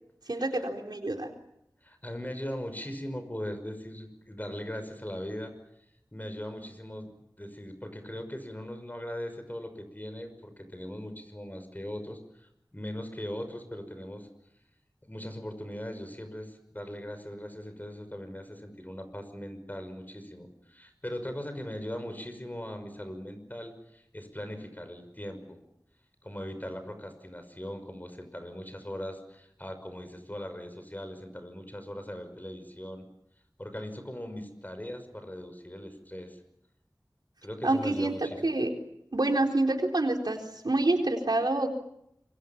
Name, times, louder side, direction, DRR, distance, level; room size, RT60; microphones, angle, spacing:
voice 1, 0.3-1.3 37.6-38.2 38.4-38.7 39.1-41.7, right 2 dB, 80° right, 2 dB, 4.1 m, -27 dB
voice 2, 1.8-5.5 6.1-7.1 7.4-14.3 15.1-25.6 26.2-33.1 33.6-36.4 37.4-38.5, equal, 25° left, 8 dB, 5.9 m, -40 dB
27.0 x 23.5 x 7.3 m, 0.78 s
wide cardioid pair, 40°, 7 cm